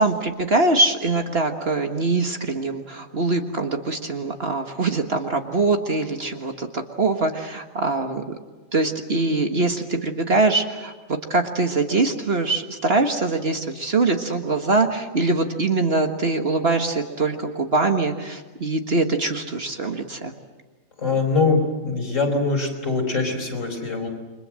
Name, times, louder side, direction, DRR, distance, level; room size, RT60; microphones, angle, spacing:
voice 1, 0.0-8.2 8.7-10.9 11.3-20.3, right 3 dB, 45° right, 5 dB, 1.8 m, -23 dB
voice 2, 21.0-24.1, left 3 dB, 60° left, 3 dB, 5.3 m, -23 dB
29.5 x 23.5 x 7.6 m, 1.2 s
omnidirectional pair, 1.5 m